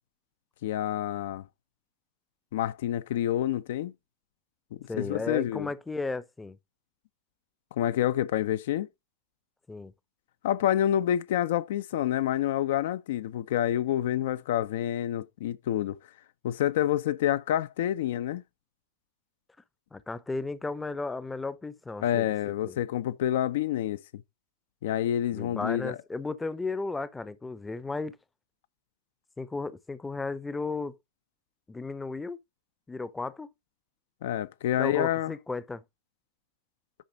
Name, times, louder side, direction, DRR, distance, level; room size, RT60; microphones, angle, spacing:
voice 1, 0.6-1.4 2.5-3.9 4.7-5.7 7.8-8.9 10.4-16.0 16.4-18.4 22.0-24.2 24.8-26.0 34.2-35.3, left 11 dB, 55° left, 0.6 m, -28 dB
voice 2, 4.9-6.6 9.7-9.9 19.9-22.3 22.6-22.8 25.3-28.2 29.4-31.0 31.7-32.4 32.9-33.5 34.8-35.8, left 3 dB, 10° left, 0.7 m, -34 dB
10.0 x 5.6 x 3.9 m
figure-of-eight pair, 90°, 0 cm